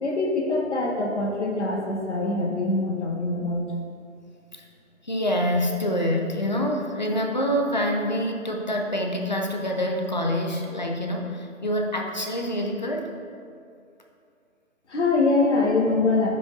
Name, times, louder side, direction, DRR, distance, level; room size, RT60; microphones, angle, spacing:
voice 1, 0.0-3.6 14.9-16.3, left 3 dB, 55° left, -1 dB, 1.5 m, -23 dB
voice 2, 5.0-13.1, equal, 35° left, 1 dB, 0.6 m, -26 dB
11.0 x 5.4 x 2.5 m, 2.4 s
hypercardioid pair, 170°, 41 cm